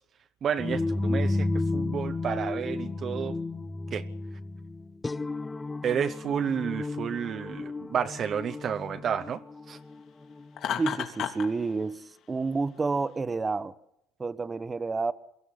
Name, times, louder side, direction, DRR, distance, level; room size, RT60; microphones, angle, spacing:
voice 1, 0.4-1.5 1.7-3.4 3.9-4.1 5.8-9.4 9.7-9.8, right 8 dB, 45° right, 0.9 m, -30 dB
sound 1, 0.6-10.5, left 2 dB, 15° left, 0.8 m, -32 dB
Laughter, 10.6-11.5, left 9 dB, 55° left, 3.2 m, -31 dB
voice 2, 10.8-13.7 14.2-15.1, right 4 dB, 20° right, 1.1 m, -29 dB
23.0 x 14.0 x 9.7 m
supercardioid pair, 100°, 0 cm